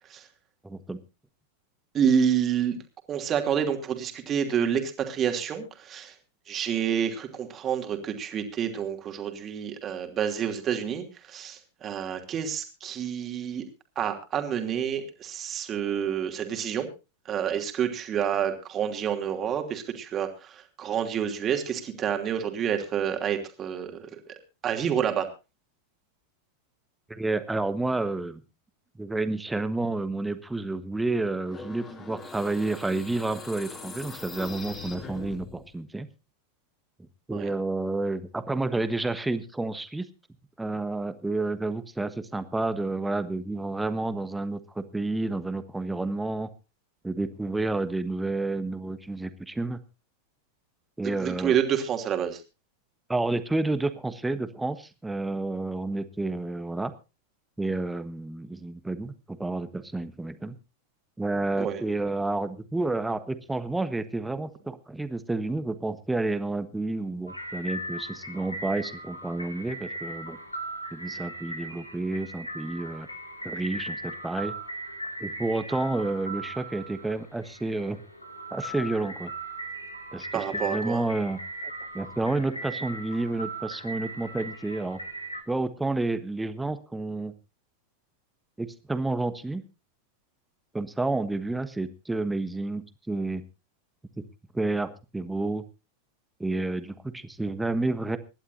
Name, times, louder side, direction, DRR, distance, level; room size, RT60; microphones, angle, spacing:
voice 1, 0.6-1.0 27.1-28.4 29.0-36.1 37.3-40.1 40.6-46.5 47.0-49.8 51.0-51.5 53.1-56.9 57.6-60.6 61.2-70.4 70.9-73.1 73.4-74.5 75.2-78.0 78.5-79.3 80.1-81.4 81.9-85.0 85.5-87.3 88.6-89.6 90.7-93.4 94.5-95.6 96.4-98.2, right 2 dB, 5° right, 11 dB, 1.3 m, -30 dB
voice 2, 1.9-2.8 3.1-6.1 6.5-13.6 14.0-16.9 17.2-24.3 24.6-25.3 37.3-37.5 51.0-52.4 61.6-61.8 80.3-81.0, right 8 dB, 30° right, 5 dB, 2.8 m, -28 dB
sound 1, 31.4-35.7, left 4 dB, 25° left, 3.9 m, -42 dB
sound 2, 67.3-85.4, right 1 dB, 85° left, 2.5 m, -38 dB
26.0 x 11.5 x 2.7 m, 0.30 s
figure-of-eight pair, 90°, 0 cm